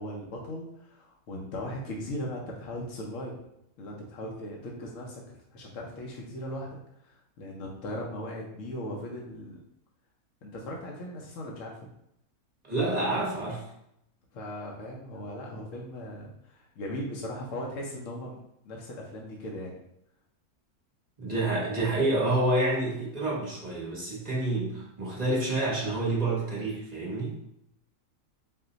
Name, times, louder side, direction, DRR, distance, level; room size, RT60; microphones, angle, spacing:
voice 1, 0.0-3.4 3.8-9.6 10.4-11.9 14.3-18.4 18.6-19.7, left 1 dB, 65° left, -2 dB, 1.0 m, -38 dB
voice 2, 12.6-13.6 21.2-27.4, right 2 dB, 30° right, -5 dB, 1.0 m, -28 dB
4.3 x 2.2 x 3.8 m, 0.79 s
omnidirectional pair, 1.6 m